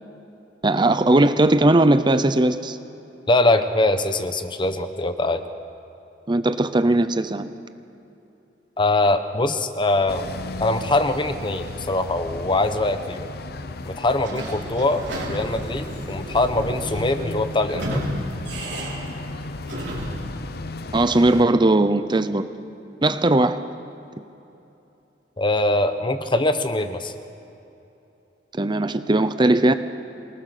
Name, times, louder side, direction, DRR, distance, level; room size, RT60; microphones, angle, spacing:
voice 1, 0.6-2.8 6.3-7.5 20.9-22.5 23.0-23.6 28.5-29.7, right 2 dB, 25° right, 11 dB, 0.7 m, -18 dB
voice 2, 3.3-5.4 8.8-10.3 10.6-13.3 13.9-18.0 25.4-27.1, left 2 dB, 25° left, 9 dB, 1.0 m, -22 dB
sound 1, 10.1-21.4, left 2 dB, 60° left, 0.8 m, -35 dB
Sliding door / Squeak, 14.2-20.3, right 1 dB, 85° right, 4.4 m, -33 dB
27.0 x 19.0 x 6.8 m, 2.9 s
head